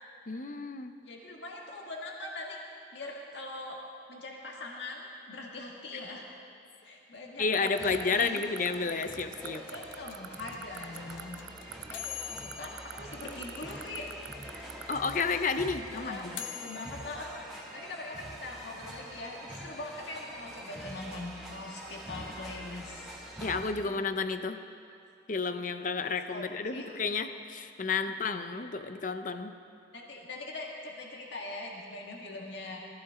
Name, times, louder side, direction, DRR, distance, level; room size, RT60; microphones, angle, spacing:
voice 1, 0.3-1.0 7.4-9.7 14.9-16.4 23.4-24.6 25.3-29.6, left 4 dB, 45° left, 9 dB, 0.6 m, -31 dB
voice 2, 1.0-2.6 2.9-3.8 4.1-6.3 6.8-8.5 9.7-11.4 11.7-14.1 15.9-17.3 17.7-24.0 26.3-26.5 26.7-26.9 29.9-32.8, left 2 dB, 65° left, -1 dB, 1.8 m, -42 dB
sound 1, 7.5-15.2, right 12 dB, 65° right, 0.3 m, -40 dB
sound 2, 7.7-23.7, right 1 dB, ahead, 2.3 m, -45 dB
sound 3, 9.2-14.3 14.6-14.7 14.9-17.2, left 9 dB, 85° left, 0.7 m, -43 dB
22.0 x 15.5 x 3.7 m, 2.6 s
head